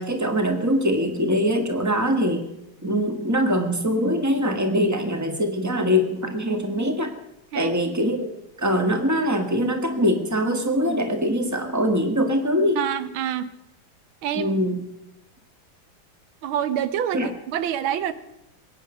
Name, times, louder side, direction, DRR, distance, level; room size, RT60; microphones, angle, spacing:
voice 1, 0.0-2.5 2.8-7.1 7.5-8.3 8.6-12.8 14.3-14.8 17.1-17.3, equal, 10° right, 6 dB, 1.6 m, -23 dB
voice 2, 12.8-13.5 14.2-14.6 16.4-18.1, right 9 dB, 85° right, 14 dB, 1.6 m, -26 dB
21.5 x 9.6 x 6.4 m, 0.84 s
omnidirectional pair, 2.2 m